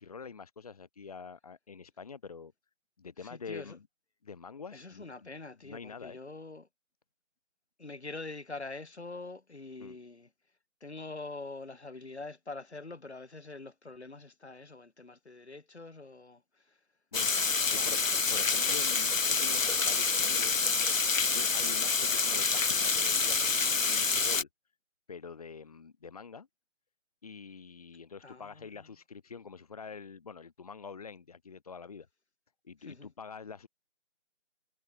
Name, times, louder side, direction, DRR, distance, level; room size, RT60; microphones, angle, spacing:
voice 1, 0.0-2.5 3.0-3.9 4.2-5.3 5.6-6.2 9.8-10.0 17.1-18.0 18.3-20.8 21.3-24.5 25.1-26.5 27.2-32.1 32.6-33.7, left 5 dB, 30° left, 4.2 m, -46 dB
voice 2, 3.2-3.8 4.7-6.7 7.8-10.3 10.8-16.4 17.7-17.9 28.2-28.7 32.8-33.1, left 3 dB, 55° left, 7.0 m, -44 dB
Water, 17.1-24.4, left 4 dB, 85° left, 1.0 m, -27 dB
figure-of-eight pair, 165°, 39 cm